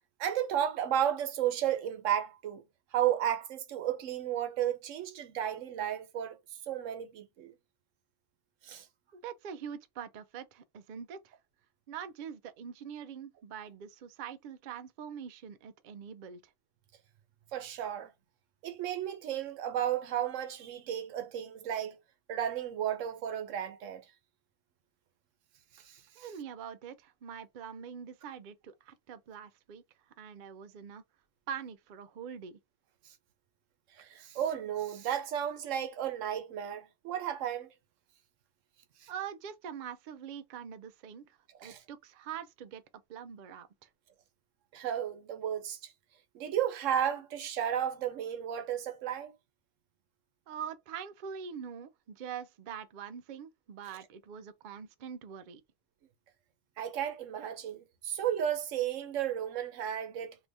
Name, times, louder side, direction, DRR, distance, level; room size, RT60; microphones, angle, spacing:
voice 1, 0.2-2.6 2.9-6.4 6.7-7.5 8.6-8.9 17.5-18.1 18.6-22.0 22.3-24.0 25.7-26.3 33.9-37.7 39.0-39.1 41.6-41.8 44.7-45.9 46.3-49.3 56.8-60.4, right 10 dB, 90° right, 1.0 m, -33 dB
voice 2, 9.1-11.3 11.9-16.5 26.2-29.8 30.2-31.0 31.5-32.6 39.1-42.8 43.1-43.9 50.5-55.6, right 8 dB, 60° right, 0.5 m, -44 dB
2.8 x 2.6 x 3.3 m
omnidirectional pair, 1.3 m